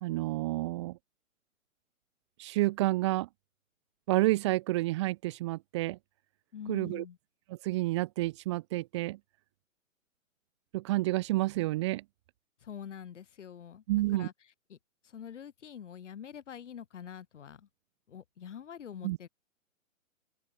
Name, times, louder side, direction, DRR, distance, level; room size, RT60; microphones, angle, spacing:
voice 1, 0.0-1.0 2.4-3.3 4.1-6.0 6.7-7.0 7.6-9.2 10.7-12.0 13.9-14.3 19.0-19.2, right 18 dB, 20° right, 0.7 m, -29 dB
voice 2, 6.5-7.2 12.6-14.3 14.7-14.8 15.0-17.7 18.1-19.3, left 8 dB, 60° left, 4.1 m, -45 dB
open air
figure-of-eight pair, 130°, 41 cm